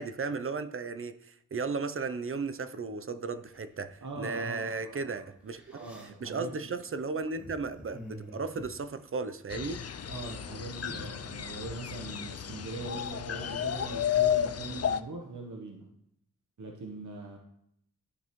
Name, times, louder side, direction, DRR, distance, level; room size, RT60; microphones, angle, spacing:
voice 1, 0.0-5.6 6.0-9.8, right 4 dB, 40° right, 11 dB, 0.5 m, -35 dB
sound 1, 3.4-4.1 4.8-4.9 5.3-9.6 9.8-10.5 10.7-12.8, equal, 5° right, 1.3 m, -50 dB
voice 2, 4.0-5.2 5.7-6.8 10.1-15.9 16.6-17.4, right 3 dB, 65° right, 0 dB, 1.1 m, -42 dB
sound 2, 9.5-15.0, left 9 dB, 50° left, 0.4 m, -32 dB
11.5 x 5.3 x 3.1 m, 0.74 s
wide cardioid pair, 105°, 33 cm